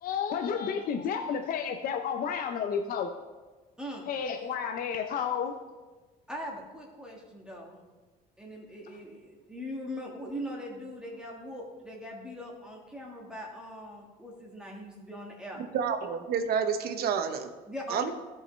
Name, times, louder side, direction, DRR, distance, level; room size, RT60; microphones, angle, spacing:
voice 1, 0.0-3.1 4.1-5.5, left 7 dB, 55° left, 5 dB, 0.6 m, -31 dB
voice 2, 3.8-4.1 6.3-7.8 8.4-15.6 17.7-18.1, equal, 5° right, -2 dB, 1.6 m, -41 dB
voice 3, 15.7-17.5 17.9-18.1, right 7 dB, 65° right, 8 dB, 0.8 m, -29 dB
14.0 x 5.6 x 3.2 m, 1.3 s
cardioid pair, 110°, 17 cm